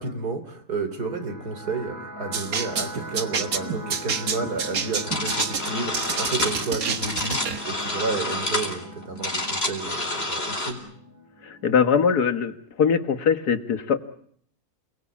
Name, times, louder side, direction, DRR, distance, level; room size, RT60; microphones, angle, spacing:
voice 1, 0.0-10.8, right 3 dB, 85° right, 9 dB, 3.9 m, -31 dB
sound 1, 1.0-11.9, equal, 10° right, 3.1 m, -40 dB
sound 2, 2.3-7.6, right 6 dB, 65° right, 2.0 m, -29 dB
sound 3, 5.0-10.7, left 2 dB, 40° left, 4.4 m, -28 dB
voice 2, 11.4-14.0, left 6 dB, 85° left, 8 dB, 2.1 m, -22 dB
29.5 x 19.5 x 8.6 m, 0.64 s
omnidirectional pair, 1.6 m